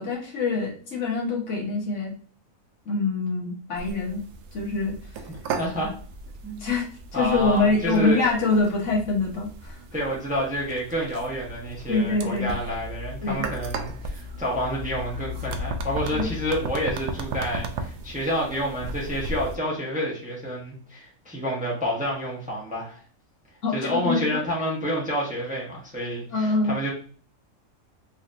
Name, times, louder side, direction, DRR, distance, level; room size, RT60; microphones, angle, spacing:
voice 1, 0.0-2.1 2.8-4.2 4.5-5.0 6.6-6.8 7.1-9.8 11.9-12.5 13.2-13.5 16.1-16.3 23.6-24.2 26.3-26.8, left 3 dB, 60° left, -2 dB, 1.3 m, -25 dB
sound 1, 3.8-19.6, right 1 dB, 65° right, 0.7 m, -35 dB
voice 2, 5.6-5.9 6.4-6.6 7.1-8.2 9.9-23.0 23.7-26.9, equal, 5° right, -4 dB, 0.8 m, -29 dB
3.9 x 2.8 x 2.5 m, 0.42 s
omnidirectional pair, 1.5 m